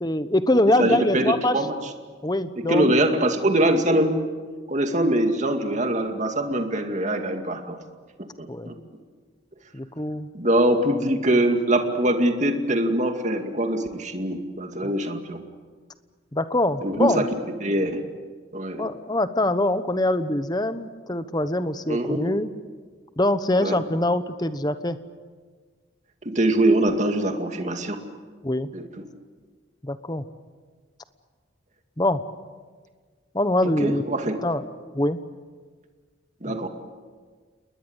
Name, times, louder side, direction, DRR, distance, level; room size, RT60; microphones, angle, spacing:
voice 1, 0.0-1.6 2.2-2.9 8.5-8.7 9.7-10.3 14.8-14.9 16.3-17.2 18.8-22.5 23.2-25.0 28.4-28.7 29.8-30.2 32.0-32.2 33.3-34.0 34.4-34.6 34.9-35.2 36.5-36.6, left 1 dB, 20° left, 11 dB, 1.0 m, -23 dB
voice 2, 0.8-1.8 2.7-4.2 4.7-7.8 8.4-8.8 10.3-15.4 16.8-17.3 17.6-18.0 18.5-18.8 21.9-22.2 23.6-23.8 26.2-28.0 28.7-28.8 33.8-34.4 36.4-36.7, right 1 dB, 35° right, 5 dB, 2.3 m, -23 dB
28.5 x 20.5 x 8.2 m, 1.5 s
head